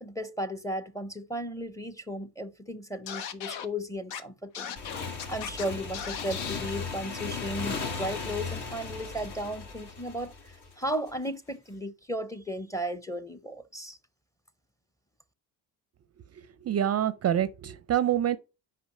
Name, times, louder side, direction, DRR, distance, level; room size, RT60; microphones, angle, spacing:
voice 1, 0.0-4.8 5.3-14.0, equal, 5° left, 0.7 m, -35 dB
Scratching (performance technique), 3.1-3.7 4.1-4.2 4.5-5.6 5.9-6.6, left 8 dB, 80° left, 1.0 m, -37 dB
Motorcycle / Engine, 4.8-11.1, left 4 dB, 55° left, 2.2 m, -37 dB
voice 2, 16.3-18.4, right 10 dB, 35° right, 0.5 m, -27 dB
5.6 x 5.0 x 5.5 m
supercardioid pair, 80°, 45 cm